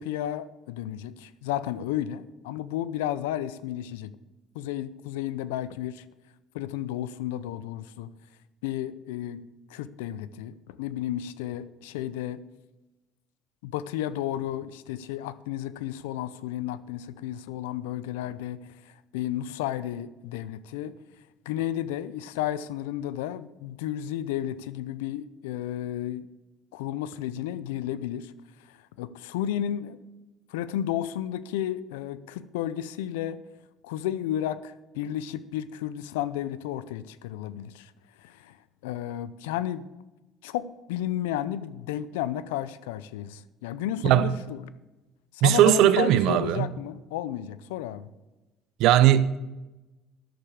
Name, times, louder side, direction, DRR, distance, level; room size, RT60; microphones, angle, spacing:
voice 1, 0.0-4.1 4.5-6.0 6.5-8.1 8.6-9.4 9.7-12.4 13.6-18.6 19.1-20.9 21.5-26.3 26.7-28.3 29.0-30.0 30.5-33.4 33.8-37.9 38.2-38.6 38.8-39.9 40.4-44.6 45.4-48.1, left 12 dB, 90° left, 0.5 m, -32 dB
voice 2, 44.0-44.5 45.4-46.7 48.8-49.4, right 12 dB, 70° right, 0.6 m, -19 dB
10.0 x 6.7 x 7.1 m
supercardioid pair, 75°, 0 cm